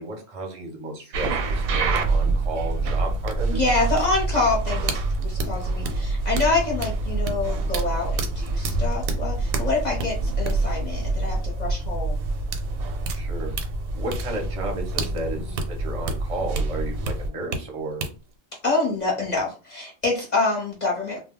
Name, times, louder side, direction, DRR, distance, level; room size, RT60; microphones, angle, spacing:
voice 1, 0.0-3.6 13.1-13.5 13.9-18.1, right 2 dB, 35° right, 1 dB, 0.6 m, -33 dB
sound 1, 1.1-17.6 18.0-18.1, right 3 dB, 85° right, 1.0 m, -26 dB
voice 2, 3.5-12.2 18.6-21.2, left 3 dB, 40° left, -3 dB, 0.7 m, -26 dB
2.2 x 2.0 x 3.6 m, 0.34 s
omnidirectional pair, 1.4 m